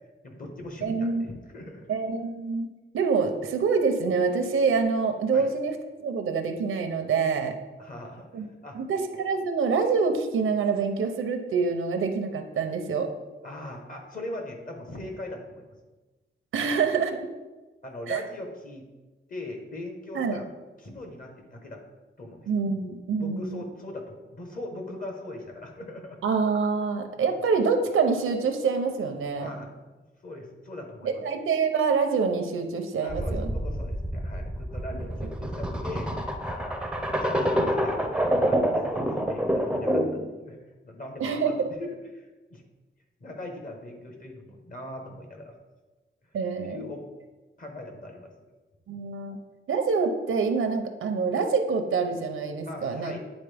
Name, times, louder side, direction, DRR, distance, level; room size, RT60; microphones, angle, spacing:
voice 1, 0.2-1.9 5.3-5.5 7.8-8.8 13.4-15.7 16.6-16.8 17.8-18.9 19.3-20.5 20.8-21.8 22.2-22.5 23.2-26.2 29.4-29.8 30.2-31.2 33.0-36.1 36.4-40.6 40.8-42.6 43.2-45.6 46.6-47.0 47.6-48.3 48.9-49.0 52.7-53.2, left 1 dB, 40° left, 2 dB, 1.2 m, -40 dB
voice 2, 0.8-1.2 1.9-2.7 2.9-5.7 6.0-7.5 8.3-8.5 8.7-13.1 16.5-17.2 18.1-18.2 20.1-20.4 22.5-23.6 26.2-29.5 31.0-33.5 41.2-41.7 46.3-46.8 48.9-49.4 49.7-53.2, right 5 dB, 85° right, 6 dB, 0.7 m, -26 dB
sound 1, 33.1-40.3, equal, 5° right, 0.5 m, -27 dB
9.7 x 4.1 x 3.4 m, 1.2 s
wide cardioid pair, 145°, 21 cm